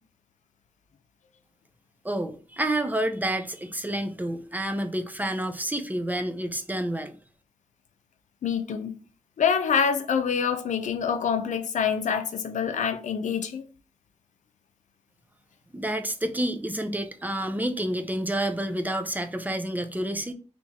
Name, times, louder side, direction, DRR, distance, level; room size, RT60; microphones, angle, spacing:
voice 1, 2.0-7.2 15.7-20.3, right 1 dB, 15° right, 0.5 m, -29 dB
voice 2, 8.4-8.9 9.4-13.7, left 7 dB, 85° left, 0.5 m, -26 dB
3.5 x 2.9 x 2.7 m
cardioid pair, 70°, 12 cm